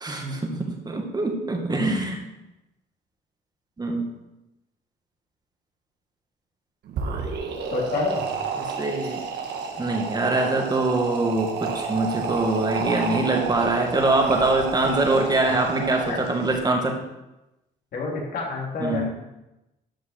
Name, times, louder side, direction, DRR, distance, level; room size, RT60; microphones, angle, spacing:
voice 1, 0.0-2.2 3.8-4.1 8.6-9.2 9.8-17.0 18.8-19.1, right 2 dB, 20° right, 2 dB, 2.0 m, -24 dB
sound 1, 6.9-16.5, right 5 dB, 70° right, 1.7 m, -30 dB
voice 2, 7.7-8.3 15.5-15.6 16.1-16.2 17.9-19.1, left 3 dB, 60° left, -2 dB, 3.2 m, -28 dB
13.0 x 5.8 x 4.4 m, 0.95 s
cardioid pair, 100°, 18 cm